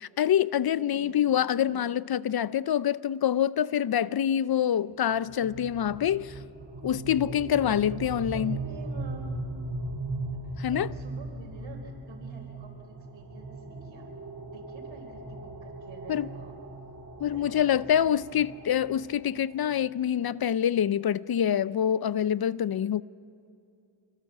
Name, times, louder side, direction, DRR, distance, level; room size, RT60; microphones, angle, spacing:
voice 1, 0.2-6.4 6.8-8.6 10.6-10.9 16.1-16.3 17.2-23.0, left 10 dB, 55° left, 0.6 m, -26 dB
voice 2, 0.8-1.2 1.6-1.8 6.6-6.8 7.6-7.8 8.3-9.6 10.3-10.4 10.7-14.1 14.4-16.6 17.3-18.0, right 4 dB, 85° right, 4.3 m, -48 dB
sound 1, 5.1-20.0, right 2 dB, 45° right, 6.7 m, -39 dB
26.5 x 24.0 x 7.4 m
cardioid pair, 60°, 44 cm